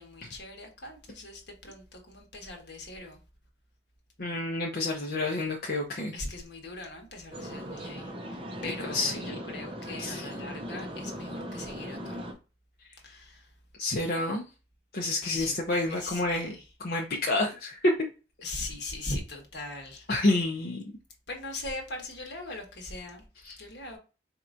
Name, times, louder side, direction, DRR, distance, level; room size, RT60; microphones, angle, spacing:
voice 1, 0.0-3.2 6.1-12.2 13.0-13.5 15.2-16.7 18.4-20.1 21.3-23.3 23.6-24.0, left 2 dB, 75° left, 1.3 m, -40 dB
voice 2, 4.2-6.1 8.6-9.1 10.0-10.2 13.8-14.4 14.9-16.5 16.8-17.9 20.1-20.8 23.5-23.6, left 2 dB, 55° left, 0.6 m, -28 dB
sound 1, 7.3-12.3, equal, 30° right, 0.6 m, -39 dB
4.4 x 2.9 x 2.5 m
head